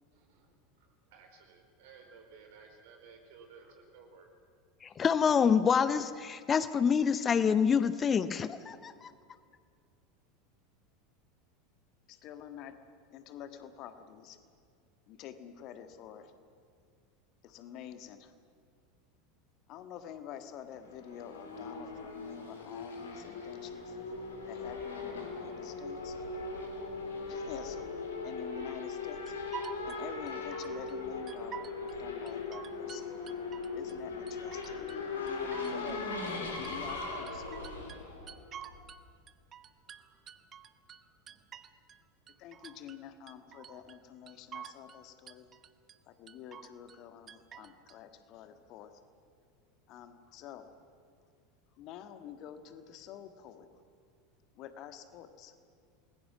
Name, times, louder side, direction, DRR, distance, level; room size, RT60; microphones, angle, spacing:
voice 1, 0.1-4.3 4.9-5.0, right 5 dB, 55° right, 4 dB, 4.4 m, -56 dB
voice 2, 4.8-9.1, left 6 dB, 25° left, 14 dB, 0.7 m, -27 dB
voice 3, 12.1-12.8 13.1-14.4 15.1-16.3 17.4-18.3 19.7-24.0 24.5-26.1 27.3-27.8 28.2-29.4 29.8-33.2 33.7-34.8 35.7-37.5 42.4-45.5 46.1-48.9 49.9-50.7 51.8-53.7 54.6-55.5, left 9 dB, 45° left, 9 dB, 1.7 m, -48 dB
Race car auto racing / Accelerating revving vroom, 20.8-39.0, left 4 dB, 70° left, 3.6 m, -39 dB
sound 1, 29.3-30.9 31.3-32.0 32.3-34.0 34.3-35.0 35.3-37.0 37.3-39.0 39.3-42.0 42.3-43.0 43.3-44.0 44.3-45.0 45.3-46.0 46.3-47.0 47.3-48.0, right 9 dB, 30° right, 1.0 m, -48 dB
28.5 x 21.0 x 6.2 m, 2.2 s
figure-of-eight pair, 80°, 0 cm